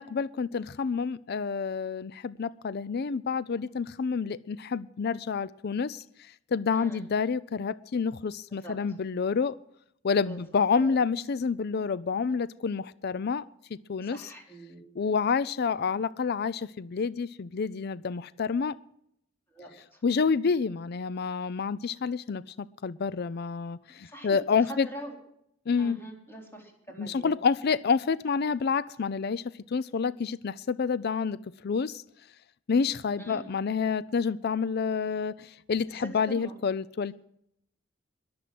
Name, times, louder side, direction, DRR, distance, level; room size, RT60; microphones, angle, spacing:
voice 1, 0.0-6.0 6.5-9.5 10.0-13.4 13.9-14.2 15.0-18.7 20.0-22.4 22.8-24.9 25.7-26.0 27.0-29.4 29.7-31.4 31.6-32.0 32.7-37.1, left 5 dB, 50° left, 18 dB, 0.4 m, -28 dB
voice 2, 6.7-7.1 8.5-9.0 10.2-11.1 14.0-14.8 19.5-20.0 24.0-25.2 25.8-27.3 33.2-33.5 35.9-36.5, right 1 dB, 10° left, 0 dB, 3.9 m, -44 dB
22.0 x 7.8 x 6.0 m, 0.71 s
head